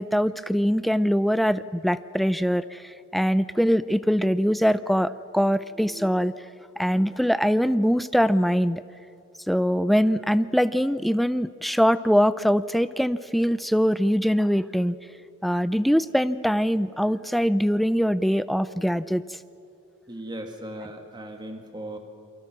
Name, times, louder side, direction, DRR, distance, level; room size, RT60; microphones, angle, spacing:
voice 1, 0.0-6.3 6.8-8.8 9.5-15.0 15.4-19.3, equal, ahead, 14 dB, 0.5 m, -23 dB
voice 2, 20.1-22.0, right 1 dB, 20° right, 4 dB, 2.1 m, -37 dB
28.5 x 24.0 x 6.1 m, 2.6 s
head